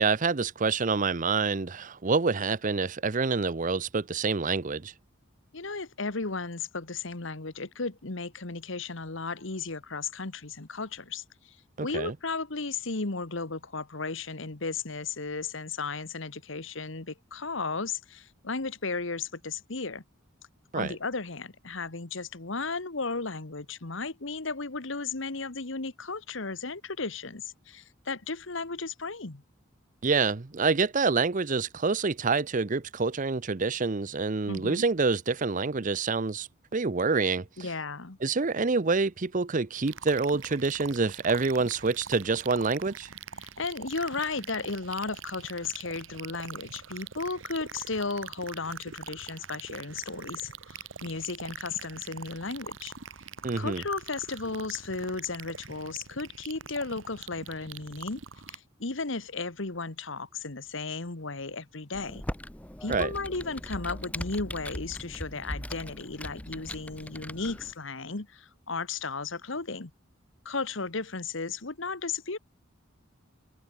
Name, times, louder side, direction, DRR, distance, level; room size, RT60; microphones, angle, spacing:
voice 1, 0.0-4.9 11.8-12.1 20.7-21.0 30.0-37.5 38.2-43.1 53.4-53.8 62.9-63.1, right 4 dB, 40° right, 0.7 m, -27 dB
voice 2, 5.5-20.0 20.7-29.4 34.5-34.8 37.6-38.2 43.4-52.9 53.6-58.2 58.5-62.2 62.8-69.9 70.4-72.4, left 4 dB, 65° left, 1.5 m, -35 dB
sound 1, 39.9-58.6, right 7 dB, 65° right, 1.2 m, -44 dB
Computer keyboard, 61.9-67.7, left 1 dB, 5° left, 1.0 m, -39 dB
head